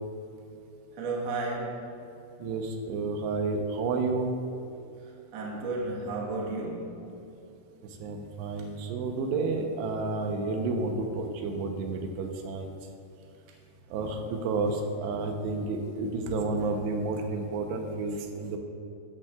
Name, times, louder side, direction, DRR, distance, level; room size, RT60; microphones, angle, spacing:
voice 1, 0.9-1.9 5.0-7.1, right 2 dB, 60° right, -3 dB, 1.7 m, -33 dB
voice 2, 2.4-4.3 8.0-12.7 13.9-18.6, right 3 dB, 85° right, 3 dB, 3.0 m, -30 dB
15.0 x 8.9 x 2.3 m, 2.7 s
omnidirectional pair, 4.8 m